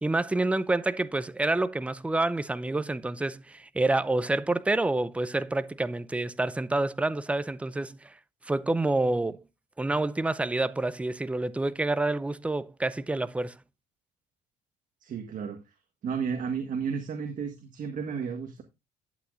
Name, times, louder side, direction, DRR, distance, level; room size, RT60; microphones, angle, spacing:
voice 1, 0.0-8.1 8.4-9.4 9.8-13.6, right 2 dB, 5° right, 0.5 m, -28 dB
voice 2, 15.0-15.6 16.0-18.6, right 6 dB, 50° right, 1.5 m, -32 dB
11.5 x 8.3 x 2.5 m
cardioid pair, 110°, 17 cm